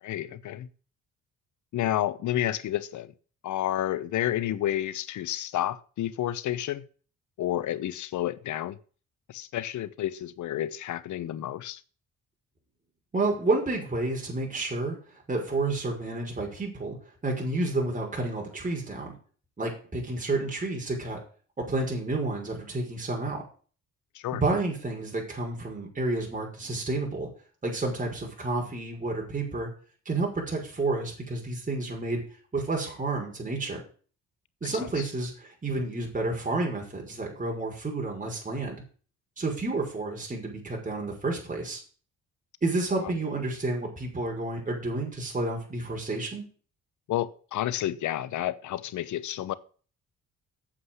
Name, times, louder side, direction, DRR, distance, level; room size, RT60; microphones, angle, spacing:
voice 1, 0.0-0.7 1.7-3.1 3.4-6.8 7.4-8.8 9.3-11.8 24.1-24.4 34.6-35.1 43.0-43.1 47.1-49.6, left 12 dB, 75° left, 1.0 m, -30 dB
voice 2, 13.1-15.0 15.3-17.0 17.2-19.1 19.6-21.2 21.6-23.4 24.3-27.3 27.6-29.7 30.1-32.2 32.5-33.8 34.6-38.8 39.4-41.8 42.6-46.4, right 2 dB, 25° right, 5.7 m, -30 dB
8.7 x 7.5 x 8.0 m
cardioid pair, 90°, 30 cm